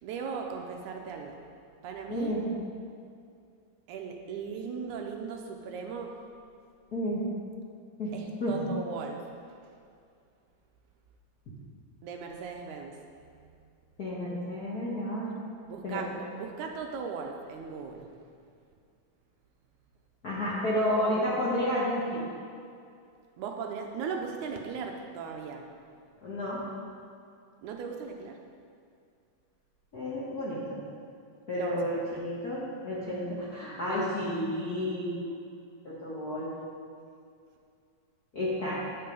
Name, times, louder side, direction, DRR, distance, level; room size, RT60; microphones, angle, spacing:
voice 1, 0.0-1.4 1.8-2.3 3.9-6.2 8.1-9.3 12.0-13.0 13.3-13.5 15.7-16.1 16.4-18.1 23.4-25.7 27.6-28.4 31.5-31.8, right 5 dB, 80° right, 2 dB, 1.9 m, -38 dB
voice 2, 2.1-2.5 6.9-7.2 8.0-8.7 14.0-15.3 15.8-16.0 20.2-22.2 26.2-26.6 29.9-30.8 31.5-35.3 35.8-36.5 38.3-38.8, left 1 dB, 65° left, -8 dB, 0.9 m, -31 dB
9.4 x 6.7 x 5.2 m, 2.4 s
omnidirectional pair, 4.0 m